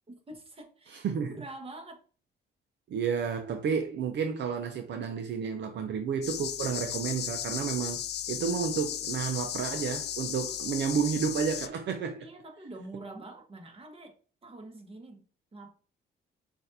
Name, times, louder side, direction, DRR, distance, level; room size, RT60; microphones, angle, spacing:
voice 1, 0.1-2.0 12.2-14.1 14.4-15.2 15.5-15.7, right 2 dB, 30° right, 1.3 m, -45 dB
voice 2, 0.9-1.4 2.9-8.0 8.3-12.3, right 6 dB, 65° right, 0.6 m, -31 dB
sound 1, 6.2-11.7, left 11 dB, 60° left, 0.4 m, -35 dB
6.3 x 2.6 x 2.7 m
cardioid pair, 90°, 20 cm